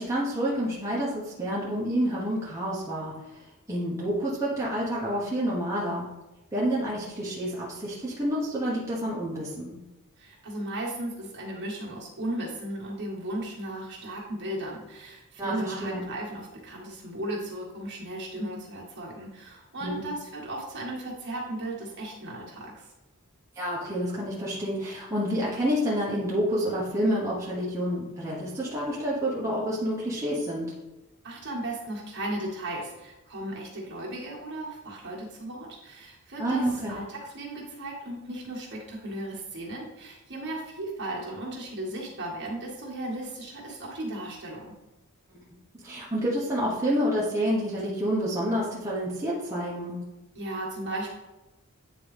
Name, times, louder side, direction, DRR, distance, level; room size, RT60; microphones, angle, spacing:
voice 1, 0.0-3.1 3.7-6.1 6.5-9.8 15.4-16.0 19.8-20.0 23.6-30.7 36.4-37.0 45.8-50.0, equal, 15° right, -7 dB, 1.1 m, -28 dB
voice 2, 10.2-22.9 31.2-44.7 50.4-51.1, right 1 dB, 50° right, -4 dB, 1.8 m, -36 dB
9.2 x 3.8 x 3.4 m, 1.0 s
head